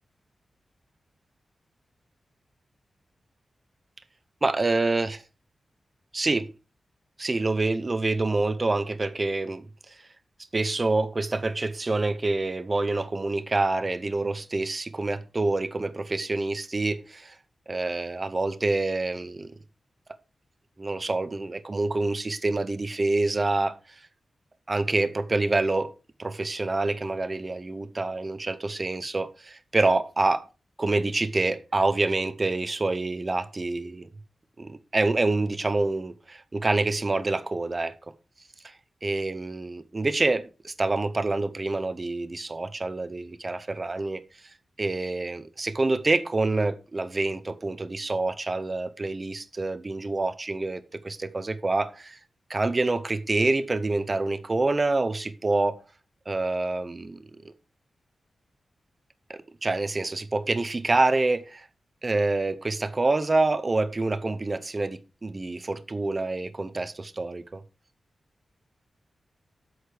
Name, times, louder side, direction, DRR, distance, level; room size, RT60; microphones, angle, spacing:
voice 1, 4.4-5.2 6.1-6.5 7.2-10.0 10.5-17.4 17.7-19.5 20.8-24.0 24.7-25.9 26.2-30.5 30.8-34.1 34.6-37.9 38.6-38.8 39.0-44.2 44.8-52.2 52.5-55.8 56.3-57.5 59.3-61.7 62.0-67.6, right 2 dB, 25° right, 0.7 m, -27 dB
8.1 x 6.5 x 4.9 m
wide cardioid pair, 170°, 0 cm